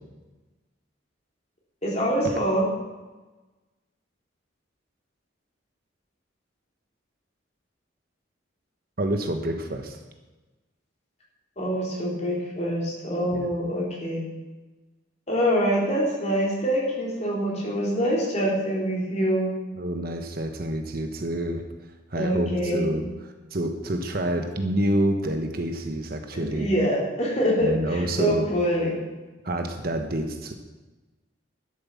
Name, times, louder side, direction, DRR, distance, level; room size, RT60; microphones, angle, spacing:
voice 1, 1.8-2.7 11.6-14.2 15.3-19.5 22.2-22.9 26.3-28.9, equal, 35° left, -4 dB, 4.0 m, -25 dB
voice 2, 9.0-10.0 13.3-13.5 19.8-21.7 22.1-23.1 23.5-26.7 27.6-28.5 29.4-30.5, right 1 dB, 50° right, 5 dB, 1.1 m, -27 dB
12.0 x 7.9 x 7.2 m, 1.2 s
head